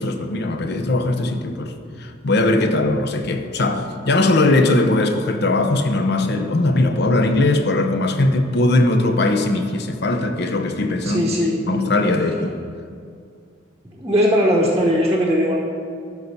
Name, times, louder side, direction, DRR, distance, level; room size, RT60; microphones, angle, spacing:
voice 1, 0.0-1.7 2.0-12.5, left 2 dB, 55° left, 6 dB, 0.8 m, -19 dB
voice 2, 11.0-11.6 13.9-15.6, equal, 15° right, -3 dB, 0.9 m, -19 dB
11.5 x 4.1 x 6.7 m, 2.3 s
head